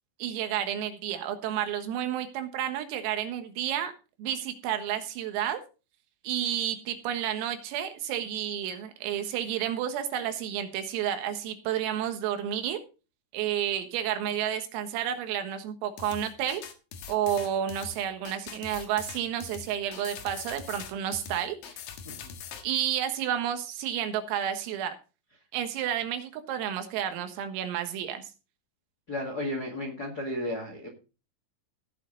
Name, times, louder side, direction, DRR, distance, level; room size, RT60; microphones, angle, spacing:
voice 1, 0.2-3.9 4.2-5.6 6.2-12.8 13.3-16.6 17.1-21.6 22.6-25.0 25.5-28.3, right 10 dB, 90° right, 8 dB, 4.2 m, -31 dB
sound 1, 16.0-22.6, left 7 dB, 65° left, 2.5 m, -42 dB
voice 2, 22.0-22.4 29.1-30.9, left 1 dB, 90° left, 2 dB, 0.8 m, -34 dB
18.0 x 6.6 x 3.9 m, 0.32 s
omnidirectional pair, 5.8 m